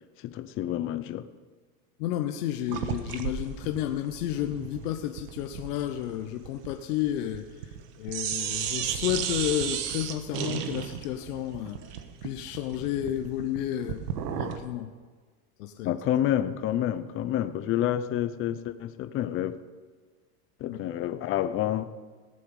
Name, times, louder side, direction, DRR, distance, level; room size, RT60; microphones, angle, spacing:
voice 1, 0.2-1.3 15.8-19.6 20.6-21.9, left 11 dB, 30° left, 12 dB, 0.6 m, -28 dB
voice 2, 2.0-7.4 8.0-11.8 12.2-14.0 14.3-14.9 15.6-16.0 20.7-20.8, left 12 dB, 75° left, 6 dB, 1.0 m, -31 dB
sound 1, 2.7-7.8 8.1-14.7, right 9 dB, 85° right, 1.3 m, -34 dB
18.0 x 7.7 x 5.4 m, 1.4 s
supercardioid pair, 140°, 46 cm